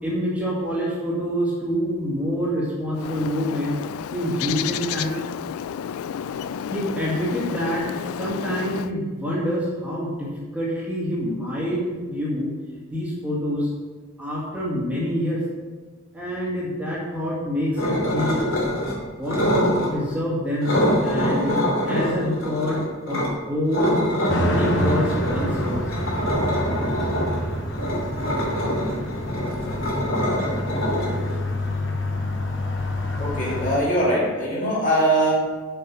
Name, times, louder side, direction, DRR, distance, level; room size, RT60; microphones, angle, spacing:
voice 1, 0.0-3.8 4.1-5.2 6.3-6.4 6.7-7.9 8.2-12.5 12.9-13.7 14.2-15.4 16.1-18.5 19.1-20.7 21.0-24.0 24.5-25.9, equal, 5° right, -8 dB, 2.0 m, -26 dB
Bird, 2.9-8.9, left 8 dB, 90° left, 0.3 m, -31 dB
sound 1, 17.8-19.0 19.2-19.9 20.6-23.3 23.7-31.8, equal, 70° left, 2.9 m, -24 dB
sound 2, 24.3-33.8, left 1 dB, 55° left, 1.1 m, -27 dB
voice 2, 33.2-35.3, right 1 dB, 35° left, -6 dB, 2.4 m, -21 dB
6.9 x 6.5 x 6.3 m, 1.4 s
head